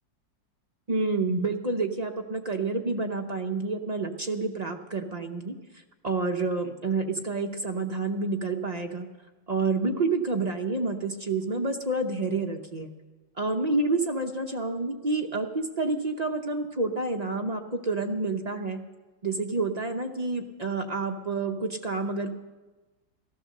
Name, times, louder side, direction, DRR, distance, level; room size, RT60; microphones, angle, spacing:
voice 1, 0.9-9.1 9.5-12.9 13.4-18.8 19.2-22.3, right 3 dB, 55° right, 4 dB, 0.4 m, -29 dB
15.0 x 13.0 x 6.5 m, 1.2 s
omnidirectional pair, 2.0 m